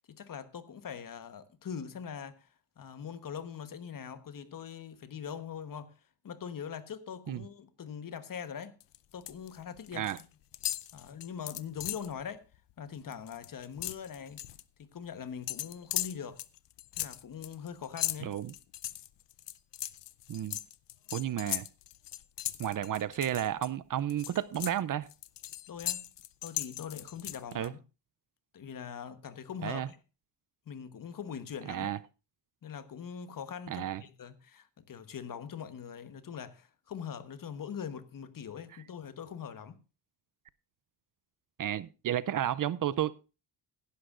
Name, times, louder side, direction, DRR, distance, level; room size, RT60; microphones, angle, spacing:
voice 1, 0.1-2.5 2.8-5.9 6.2-8.7 9.1-10.1 10.9-12.4 12.8-14.4 14.8-16.4 17.0-18.4 25.7-26.1 26.4-27.8 28.5-30.0 30.7-32.0 32.6-39.8, left 7 dB, 50° left, 1.2 m, -42 dB
sound 1, 8.8-9.5 9.8-10.2 10.5-12.1 12.5-12.7 13.0-14.6 15.5-23.7 24.1-27.7, left 14 dB, 85° left, 0.7 m, -38 dB
voice 2, 18.2-18.5 20.3-20.6 21.1-21.7 22.6-25.1 27.5-27.7 29.6-29.9 31.7-32.0 33.7-34.0 41.6-43.3, right 11 dB, 50° right, 0.5 m, -32 dB
16.5 x 11.5 x 2.5 m
cardioid pair, 110°, 42 cm